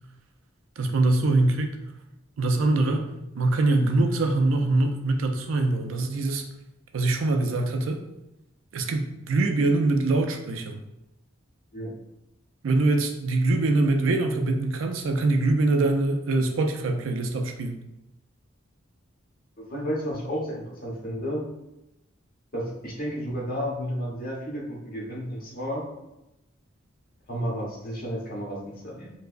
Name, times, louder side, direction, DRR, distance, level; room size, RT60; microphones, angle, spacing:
voice 1, 0.8-1.7 2.4-6.4 6.9-8.0 8.7-10.8 12.6-17.8, right 2 dB, 90° right, 5 dB, 0.5 m, -23 dB
voice 2, 19.6-21.5 22.5-25.8 27.3-29.1, equal, 50° left, -5 dB, 1.2 m, -32 dB
4.5 x 2.0 x 2.5 m, 0.90 s
head